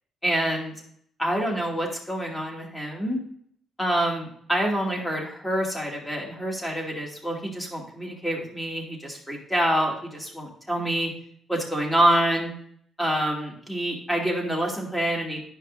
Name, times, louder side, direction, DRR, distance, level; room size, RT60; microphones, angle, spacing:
voice 1, 0.2-0.7 1.2-3.2 3.8-11.1 11.5-12.5 13.0-15.4, right 1 dB, 10° left, -1 dB, 2.4 m, -26 dB
10.0 x 5.4 x 2.6 m, 0.64 s
cardioid pair, 90°, 0 cm